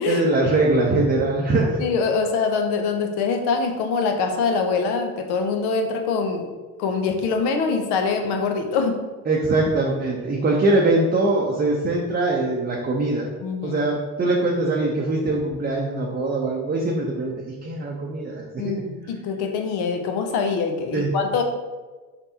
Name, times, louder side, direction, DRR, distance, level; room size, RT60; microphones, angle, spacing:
voice 1, 0.1-1.8 9.3-13.3 13.6-18.9 20.9-21.2, right 2 dB, 25° right, -2 dB, 0.6 m, -22 dB
voice 2, 1.8-6.5 6.8-9.0 13.4-13.8 18.6-21.4, left 5 dB, 70° left, 5 dB, 0.7 m, -24 dB
4.0 x 3.4 x 2.8 m, 1.3 s
hypercardioid pair, 65°, 41 cm